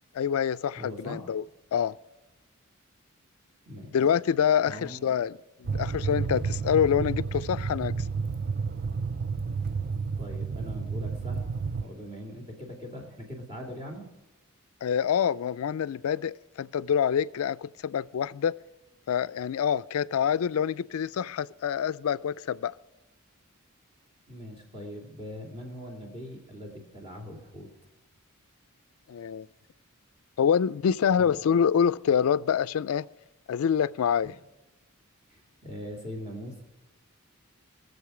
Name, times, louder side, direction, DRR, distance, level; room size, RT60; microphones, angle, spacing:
voice 1, 0.1-1.4 1.7-2.0 3.9-7.9 14.8-18.6 19.1-22.7 29.1-29.5 30.4-33.1 33.5-34.3, left 8 dB, 70° left, 0.3 m, -26 dB
voice 2, 0.8-1.2 3.7-4.0 4.7-5.1 10.2-11.5 11.8-14.1 24.3-27.7 31.2-31.4 34.2-34.3 35.3-36.6, equal, 25° right, 2.4 m, -41 dB
sound 1, 5.6-11.8, right 5 dB, 40° right, 0.4 m, -31 dB
20.5 x 7.2 x 4.9 m
head